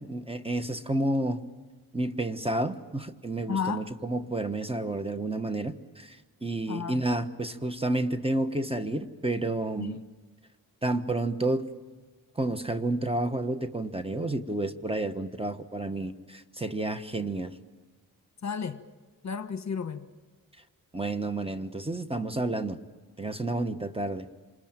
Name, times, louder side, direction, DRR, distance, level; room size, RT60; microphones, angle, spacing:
voice 1, 0.0-1.4 1.9-6.2 6.4-10.0 10.8-11.7 12.4-17.5 20.9-22.8 23.2-24.3, right 2 dB, 15° right, 1.2 m, -30 dB
voice 2, 3.5-3.9 6.7-7.0 9.8-10.1 18.4-18.8 19.2-20.1, left 6 dB, 50° left, 1.2 m, -33 dB
27.5 x 20.5 x 9.0 m
cardioid pair, 75°, 37 cm